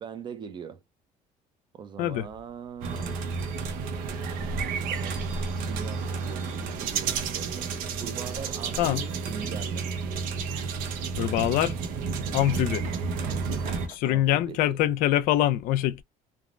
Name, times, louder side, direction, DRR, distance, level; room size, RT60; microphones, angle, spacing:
voice 1, 0.0-0.8 1.7-3.5 4.9-5.3 5.7-7.7 8.0-9.9 14.0-14.8, right 7 dB, 35° right, 0.4 m, -41 dB
sound 1, 2.8-13.9, right 5 dB, 90° right, 0.7 m, -31 dB
sound 2, 6.0-14.0, right 4 dB, 60° right, 1.2 m, -50 dB
voice 2, 11.2-11.7 12.3-12.8 13.9-16.0, left 13 dB, 85° left, 0.5 m, -24 dB
3.4 x 2.0 x 2.4 m
cardioid pair, 155°, 14 cm